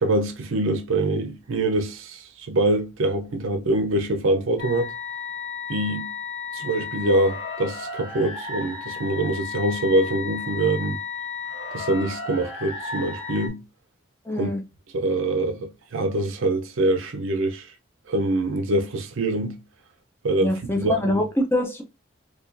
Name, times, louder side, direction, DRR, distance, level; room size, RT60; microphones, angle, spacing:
voice 1, 0.0-4.9 5.7-6.1 6.5-11.0 11.7-13.6 14.3-14.5 14.9-17.7 18.1-19.6 20.2-21.2, right 2 dB, 85° right, 0.6 m, -24 dB
sound 1, 4.6-13.5, left 5 dB, 60° left, 1.4 m, -34 dB
voice 2, 14.3-14.6 20.4-21.8, left 1 dB, 10° left, 0.5 m, -24 dB
4.6 x 2.4 x 2.5 m
head